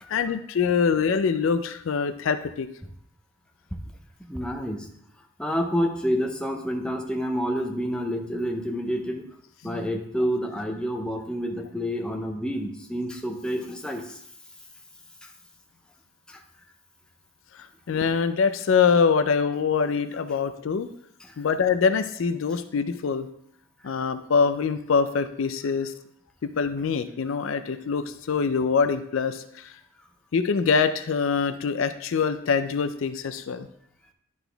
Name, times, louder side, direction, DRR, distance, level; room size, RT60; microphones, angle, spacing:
voice 1, 0.1-2.7 9.6-9.8 17.5-20.9 21.4-23.3 23.8-25.9 26.4-29.7 30.3-33.7, left 5 dB, 70° left, 11 dB, 0.4 m, -24 dB
voice 2, 4.3-4.9 5.4-9.2 9.6-14.2 16.3-16.4, equal, 5° left, 1 dB, 0.6 m, -28 dB
10.5 x 4.0 x 3.4 m, 0.70 s
head